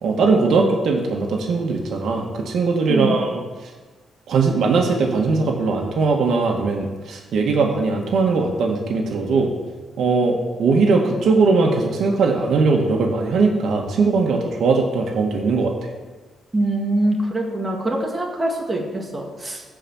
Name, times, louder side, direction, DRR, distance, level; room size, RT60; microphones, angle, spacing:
voice 1, 0.0-3.7 4.3-9.5 10.0-15.7, right 4 dB, 70° right, 1 dB, 1.9 m, -20 dB
voice 2, 16.5-19.6, right 1 dB, 15° right, -1 dB, 2.1 m, -23 dB
15.5 x 5.2 x 7.3 m, 1.4 s
cardioid pair, 125°, 0 cm